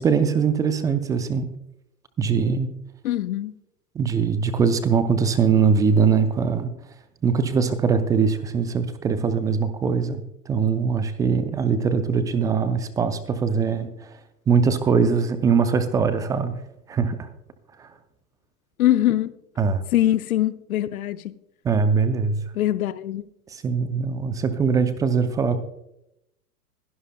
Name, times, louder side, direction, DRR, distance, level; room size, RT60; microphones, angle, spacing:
voice 1, 0.0-1.5 2.2-2.7 4.0-6.7 7.2-13.9 14.5-16.5 16.9-17.3 17.8-17.9 19.6-19.8 21.6-22.4 23.5-25.6, right 6 dB, 10° right, 0.4 m, -22 dB
voice 2, 3.0-3.5 18.8-19.3 19.9-21.3 22.5-23.2, left 13 dB, 65° left, 0.8 m, -22 dB
22.0 x 11.5 x 2.2 m
hypercardioid pair, 105°, 46 cm